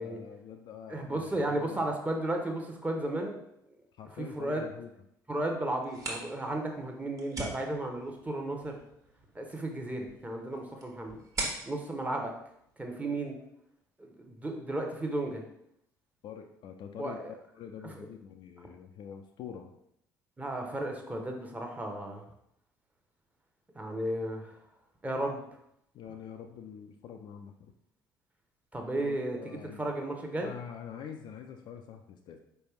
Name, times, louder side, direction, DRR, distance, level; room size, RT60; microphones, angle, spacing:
voice 1, 0.0-1.9 4.0-4.9 16.2-19.7 25.9-27.7 29.0-29.9 30.4-32.4, left 8 dB, 45° left, 5 dB, 0.4 m, -45 dB
voice 2, 0.9-3.4 4.2-4.6 5.3-8.8 9.3-11.2 11.7-12.3 12.8-13.4 14.0-15.4 17.0-17.3 17.9-18.1 20.4-22.2 23.7-24.5 25.0-25.4 28.7-30.5, right 1 dB, 15° right, 2 dB, 0.9 m, -34 dB
sound 1, 5.7-13.3, right 2 dB, 30° right, 1.2 m, -43 dB
4.4 x 3.3 x 3.1 m, 0.76 s
figure-of-eight pair, 55°, 10 cm